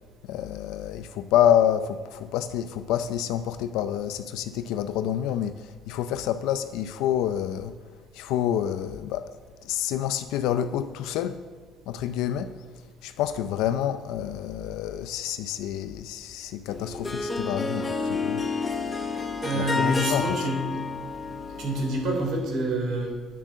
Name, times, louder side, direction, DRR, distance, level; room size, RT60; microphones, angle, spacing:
voice 1, 0.2-7.7 8.1-9.3 9.6-11.4 11.9-12.5 13.0-18.4 19.5-20.4, left 10 dB, 85° left, 10 dB, 0.5 m, -28 dB
Harp, 16.7-22.5, left 4 dB, 20° left, 0.9 m, -30 dB
voice 2, 19.4-20.6 21.6-23.1, right 1 dB, 60° right, 1 dB, 3.2 m, -27 dB
9.9 x 7.4 x 6.5 m, 1.5 s
cardioid pair, 135°, 0 cm